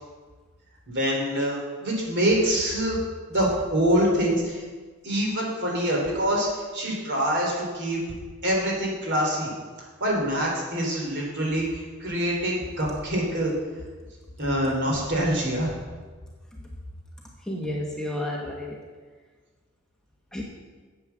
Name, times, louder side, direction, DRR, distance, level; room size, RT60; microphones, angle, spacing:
voice 1, 0.9-3.0 3.3-4.6 5.0-6.5 6.7-8.0 8.4-9.5 9.8-11.7 12.0-13.5 14.4-15.7, equal, 55° right, -2 dB, 3.4 m, -25 dB
voice 2, 17.5-18.8 20.3-20.4, left 1 dB, 5° left, -2 dB, 1.1 m, -31 dB
9.4 x 7.7 x 7.2 m, 1.4 s
head